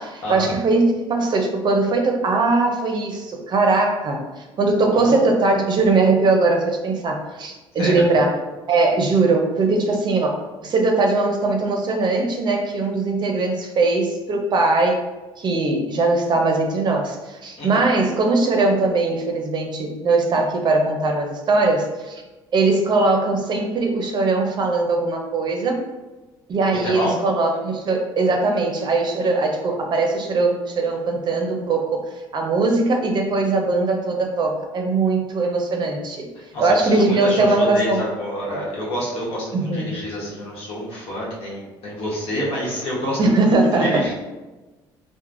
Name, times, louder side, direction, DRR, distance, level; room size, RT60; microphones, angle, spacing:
voice 1, 0.0-8.4 8.7-15.0 15.4-22.2 22.5-25.8 26.5-36.3 36.6-38.0 38.5-38.6 39.5-40.0 43.2-44.0, right 3 dB, 45° right, 2 dB, 0.5 m, -20 dB
voice 2, 7.7-8.1 17.6-17.8 26.7-27.2 36.5-44.1, equal, 70° left, -4 dB, 1.0 m, -28 dB
3.1 x 2.1 x 2.5 m, 1.2 s
supercardioid pair, 75°, 10 cm